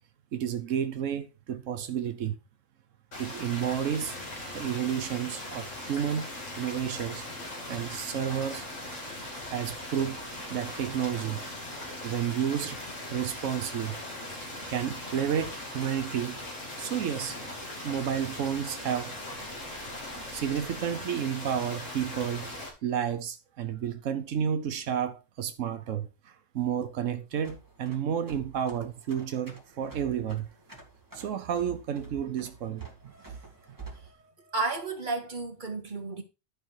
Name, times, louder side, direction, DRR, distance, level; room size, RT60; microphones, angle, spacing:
voice 1, 0.3-2.4 3.2-4.2 4.5-7.2 7.7-8.7 9.5-11.5 12.0-12.8 13.1-14.1 14.6-16.5 16.8-17.4 17.8-19.2 20.0-22.5 22.8-30.5 31.1-33.1 33.7-33.8, right 9 dB, 85° right, 1.1 m, -31 dB
sound 1, 3.1-22.7, left 1 dB, 85° left, 3.2 m, -39 dB
sound 2, 27.3-34.1, right 3 dB, 15° right, 2.3 m, -48 dB
voice 2, 34.5-36.2, right 3 dB, 40° right, 1.8 m, -33 dB
11.5 x 5.3 x 4.6 m
omnidirectional pair, 1.3 m